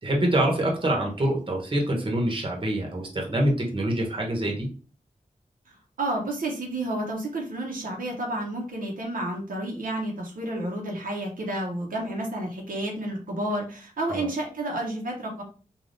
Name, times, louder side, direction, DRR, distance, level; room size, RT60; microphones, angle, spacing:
voice 1, 0.0-4.7 14.1-14.3, right 1 dB, 35° right, 0 dB, 0.9 m, -25 dB
voice 2, 5.7-15.4, right 1 dB, 80° right, 0 dB, 0.7 m, -31 dB
3.4 x 2.3 x 2.5 m, 0.39 s
wide cardioid pair, 80°, 14 cm